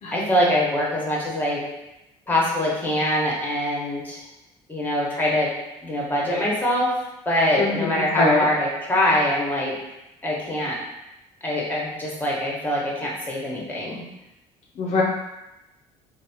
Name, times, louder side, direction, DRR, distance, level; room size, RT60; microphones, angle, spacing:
voice 1, 0.1-1.6 2.3-4.2 4.7-5.5 5.8-6.9 7.2-9.7 10.2-10.8 11.4-14.0, left 1 dB, 10° left, -4 dB, 1.1 m, -23 dB
voice 2, 7.6-8.5 14.8-15.0, left 3 dB, 50° left, -3 dB, 0.5 m, -22 dB
3.1 x 2.2 x 2.7 m, 0.94 s
supercardioid pair, 75°, 15 cm